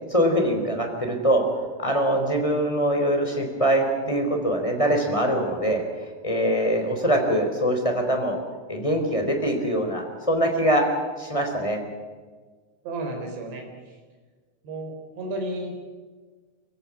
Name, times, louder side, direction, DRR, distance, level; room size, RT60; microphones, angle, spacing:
voice 1, 0.1-1.4 1.8-5.8 6.2-8.4 8.7-10.8 11.2-11.8, right 1 dB, 10° left, 3 dB, 3.1 m, -23 dB
voice 2, 12.8-13.6 14.6-15.7, right 1 dB, 65° right, 2 dB, 6.2 m, -32 dB
24.5 x 16.0 x 9.7 m, 1.4 s
omnidirectional pair, 5.3 m